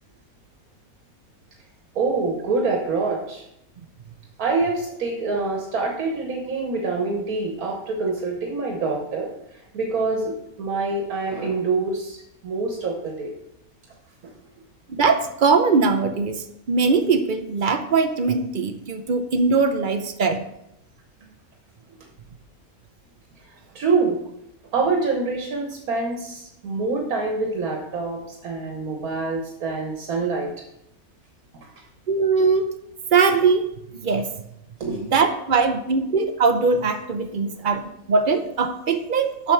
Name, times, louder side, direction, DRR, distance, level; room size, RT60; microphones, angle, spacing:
voice 1, 1.9-3.4 4.4-13.3 14.2-14.3 23.7-24.2 24.7-30.5 34.8-35.1, right 3 dB, 75° right, 1 dB, 1.6 m, -26 dB
voice 2, 14.9-20.4 32.1-32.7 33.1-33.7 33.9-34.3 35.1-37.8 38.1-39.5, right 4 dB, 50° right, 8 dB, 0.6 m, -21 dB
7.2 x 6.8 x 4.5 m, 0.80 s
omnidirectional pair, 1.5 m